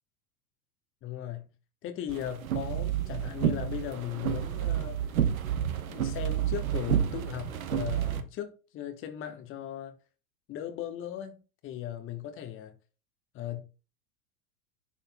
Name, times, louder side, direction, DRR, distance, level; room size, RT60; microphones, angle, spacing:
voice 1, 1.0-1.5 1.8-5.0 5.9-9.9 10.5-11.4 11.6-12.7 13.3-13.6, left 11 dB, 30° left, 1.0 m, -37 dB
sound 1, 2.1-8.2, right 10 dB, 65° right, 1.0 m, -30 dB
11.0 x 4.1 x 2.2 m
figure-of-eight pair, 90°, 45 cm